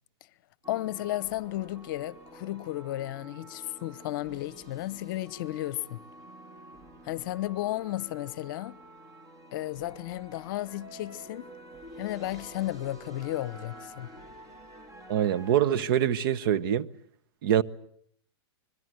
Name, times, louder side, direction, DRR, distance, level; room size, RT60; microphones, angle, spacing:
sound 1, 0.6-15.7, right 1 dB, 25° right, 2.9 m, -49 dB
voice 1, 0.7-6.0 7.0-8.8 9.5-11.5 12.0-14.1, left 15 dB, 50° left, 0.9 m, -34 dB
voice 2, 15.1-16.9 17.4-17.6, right 10 dB, 55° right, 1.1 m, -24 dB
25.5 x 22.0 x 7.9 m
hypercardioid pair, 135°, 14 cm